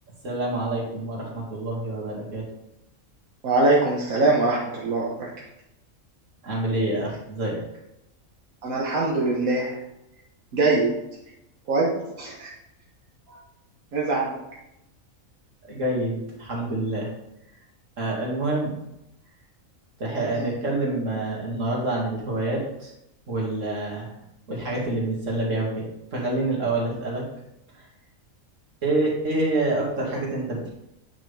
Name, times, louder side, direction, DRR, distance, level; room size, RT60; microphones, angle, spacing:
voice 1, 0.2-2.5 6.4-7.6 15.7-17.1 18.0-18.8 20.0-22.9 23.3-24.1 24.5-27.2 28.8-30.7, right 2 dB, 65° right, -4 dB, 2.6 m, -27 dB
voice 2, 3.4-5.3 8.6-9.7 10.5-11.0 11.7-12.5 13.9-14.3 20.3-20.5, right 2 dB, 85° right, -4 dB, 1.6 m, -23 dB
8.9 x 6.1 x 3.4 m, 0.84 s
omnidirectional pair, 1.4 m